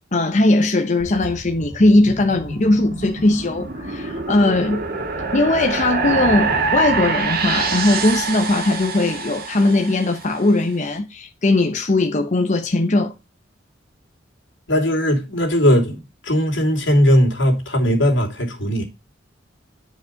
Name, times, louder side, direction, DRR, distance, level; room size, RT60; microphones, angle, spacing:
voice 1, 0.1-4.8 5.3-13.1, left 2 dB, 40° left, 0.9 m, -19 dB
sound 1, 1.0-10.4, right 4 dB, 55° right, 1.9 m, -26 dB
voice 2, 14.7-18.8, equal, 80° left, 3.0 m, -18 dB
10.0 x 5.2 x 5.1 m
head